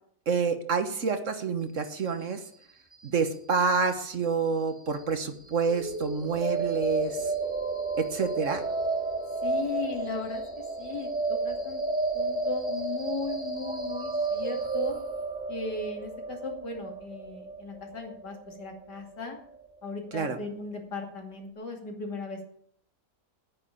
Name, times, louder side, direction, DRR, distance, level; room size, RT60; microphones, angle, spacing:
voice 1, 0.3-2.4 3.0-7.2 8.0-8.6 20.1-20.4, right 5 dB, 50° right, 8 dB, 1.5 m, -28 dB
sound 1, 5.6-19.6, right 3 dB, 5° right, 1.9 m, -32 dB
voice 2, 9.4-10.4 10.8-11.8 12.1-14.9 15.5-19.4 19.8-22.4, left 4 dB, 85° left, 2 dB, 3.0 m, -37 dB
9.6 x 9.0 x 8.6 m, 0.65 s
omnidirectional pair, 1.8 m